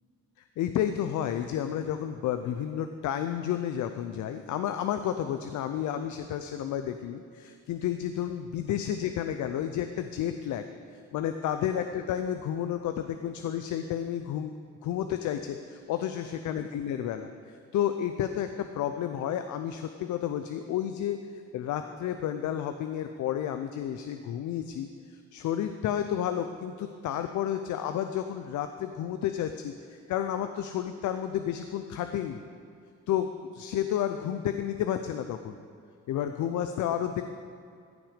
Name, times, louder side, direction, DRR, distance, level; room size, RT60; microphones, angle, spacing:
voice 1, 0.6-10.7 10.9-14.5 14.8-32.4 33.1-35.5 36.1-37.2, left 10 dB, 75° left, 8 dB, 0.6 m, -31 dB
14.5 x 6.1 x 5.1 m, 2.4 s
cardioid pair, 90°, 30 cm